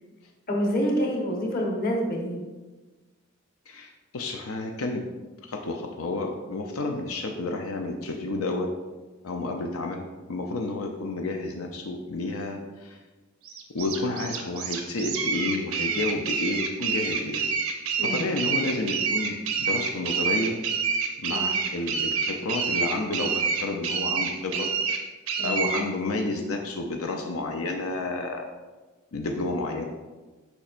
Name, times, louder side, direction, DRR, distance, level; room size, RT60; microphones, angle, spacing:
voice 1, 0.5-2.4 18.0-18.3 21.3-21.5 25.4-25.6, equal, 45° left, -2 dB, 1.2 m, -27 dB
voice 2, 3.7-5.0 5.5-8.7 9.2-13.0 13.7-17.5 18.0-20.6 21.2-24.7 25.4-28.5 29.1-29.8, left 2 dB, 90° left, 2 dB, 0.5 m, -30 dB
sound 1, 13.5-25.9, right 5 dB, 90° right, 0.8 m, -28 dB
7.1 x 5.4 x 2.5 m, 1.2 s
head